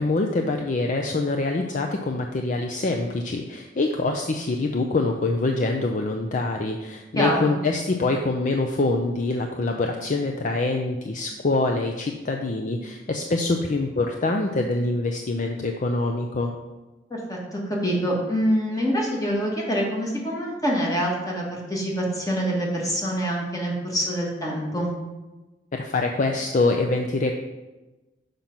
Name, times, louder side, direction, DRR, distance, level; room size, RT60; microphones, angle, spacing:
voice 1, 0.0-16.6 25.7-27.3, left 2 dB, 45° left, 3 dB, 0.5 m, -25 dB
voice 2, 7.1-7.6 17.1-24.9, equal, 20° left, -2 dB, 1.6 m, -25 dB
5.8 x 5.2 x 5.9 m, 1.1 s
head